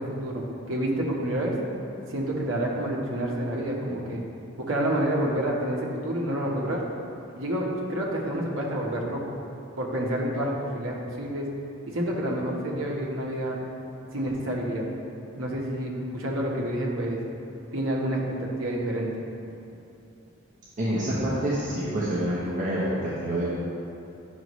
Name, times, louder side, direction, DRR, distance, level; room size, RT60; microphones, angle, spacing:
voice 1, 0.0-1.5 2.1-4.2 4.6-6.8 7.4-9.2 9.8-11.5 11.9-13.6 14.1-14.8 15.3-17.2 17.7-19.1, right 1 dB, 65° right, -3 dB, 1.2 m, -28 dB
voice 2, 20.8-23.5, right 1 dB, 40° right, -9 dB, 1.1 m, -27 dB
9.7 x 6.3 x 3.1 m, 2.7 s
head